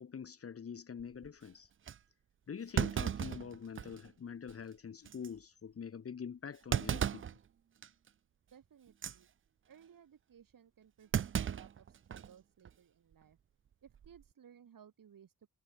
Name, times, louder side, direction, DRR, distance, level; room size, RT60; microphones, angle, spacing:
voice 1, 0.0-1.7 2.5-7.2, left 7 dB, 40° left, 1.2 m, -45 dB
Thump thud, 1.0-1.3 1.9-2.0 2.8-4.1 4.5-4.6 5.1-5.3 6.7-7.4 7.8-8.1 8.9-9.2 11.1-12.3 12.7-12.8 13.9-14.2, right 8 dB, 35° right, 0.5 m, -35 dB
voice 2, 8.5-9.3 9.6-13.4 13.8-15.5, right 8 dB, 65° right, 6.6 m, -60 dB
wide cardioid pair, 145°, 35 cm